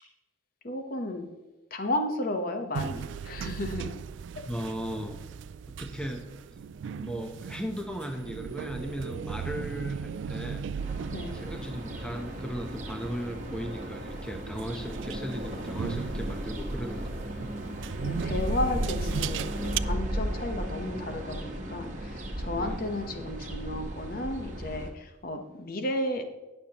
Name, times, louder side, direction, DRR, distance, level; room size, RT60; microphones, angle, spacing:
voice 1, 0.6-1.3 1.7-3.9 11.1-11.4 18.0-26.2, left 1 dB, 50° left, 6 dB, 1.0 m, -33 dB
sound 1, 2.7-19.8, right 7 dB, 75° right, 0.3 m, -38 dB
voice 2, 4.5-5.2 5.7-6.6 6.9-10.6 11.3-17.5 22.6-22.8, equal, 5° left, 3 dB, 0.8 m, -37 dB
sound 2, 10.8-24.9, right 1 dB, 40° right, 1.3 m, -35 dB
18.0 x 6.7 x 3.0 m, 1.1 s
head